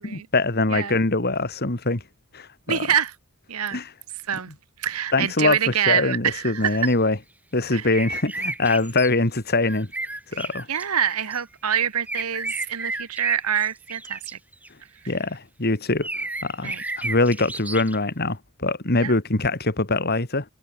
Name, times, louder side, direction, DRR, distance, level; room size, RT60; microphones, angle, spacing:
voice 1, 0.0-2.0 2.3-2.8 3.7-3.9 5.1-5.6 5.9-7.2 7.5-9.9 10.3-10.7 15.1-16.1 16.4-20.5, left 2 dB, 45° left, 2.3 m, -23 dB
voice 2, 2.7-3.1 3.5-3.8 4.3-4.5 4.8-6.8 7.7-7.9 10.3-14.4 16.6-16.8 19.0-19.1, right 8 dB, 90° right, 1.3 m, -26 dB
sound 1, 6.7-6.9 7.9-9.1 9.6-11.4 12.1-14.7 16.0-18.0, right 2 dB, 5° right, 1.0 m, -33 dB
head